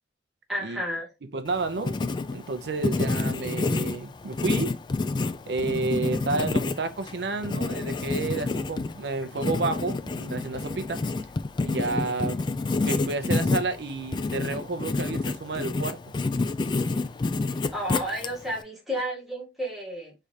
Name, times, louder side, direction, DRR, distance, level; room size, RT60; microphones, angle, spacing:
voice 1, 0.5-1.1 17.7-20.1, equal, ahead, 1.4 m, -31 dB
voice 2, 1.3-2.0 2.3-4.7 5.5-11.0 11.6-12.4 12.8-16.0, right 3 dB, 70° right, 0.6 m, -30 dB
Writing, 1.5-18.6, left 3 dB, 25° left, 0.3 m, -29 dB
4.8 x 3.3 x 2.7 m
head